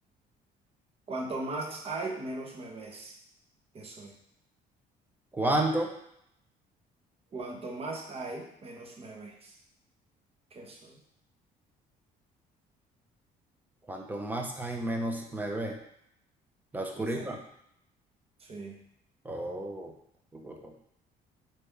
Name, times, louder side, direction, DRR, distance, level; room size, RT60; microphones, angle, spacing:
voice 1, 1.1-3.2 3.7-4.1 7.3-9.6 10.5-11.0 17.0-17.3 18.4-18.8, right 2 dB, 35° right, 1 dB, 0.9 m, -38 dB
voice 2, 5.3-5.9 13.9-15.8 16.7-17.4 19.2-19.9 20.3-20.7, right 1 dB, 10° right, 2 dB, 0.7 m, -31 dB
4.2 x 3.4 x 3.4 m, 0.75 s
cardioid pair, 110°, 17 cm